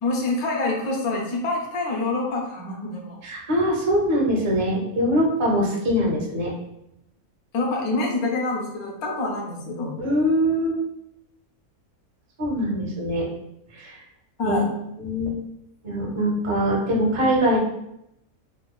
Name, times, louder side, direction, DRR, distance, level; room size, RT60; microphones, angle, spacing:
voice 1, 0.0-3.2 7.5-10.0 14.4-14.7, left 2 dB, 85° left, -1 dB, 1.2 m, -26 dB
voice 2, 3.2-6.5 10.0-10.8 12.4-13.3 13.7-14.0 14.4-14.6 15.0-15.4 15.8-17.6, equal, 40° right, -2 dB, 0.4 m, -23 dB
4.7 x 2.3 x 2.3 m, 0.82 s
omnidirectional pair, 1.5 m